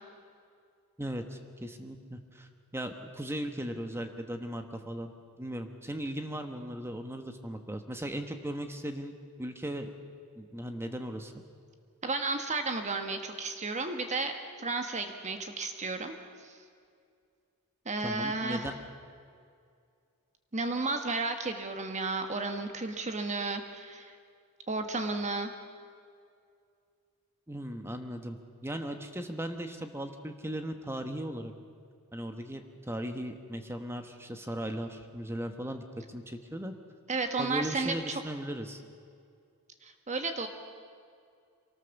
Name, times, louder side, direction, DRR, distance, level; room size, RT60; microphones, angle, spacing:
voice 1, 1.0-5.1 5.4-9.9 10.4-11.3 18.0-18.7 27.5-31.5 32.1-35.8 36.1-36.7 37.4-38.8, right 1 dB, 10° right, 6 dB, 1.2 m, -37 dB
voice 2, 12.0-16.1 16.4-16.6 17.8-18.7 20.5-24.2 24.7-25.5 37.1-38.2 39.8-40.5, right 3 dB, 30° right, 6 dB, 1.3 m, -33 dB
24.0 x 18.5 x 7.1 m, 2.3 s
head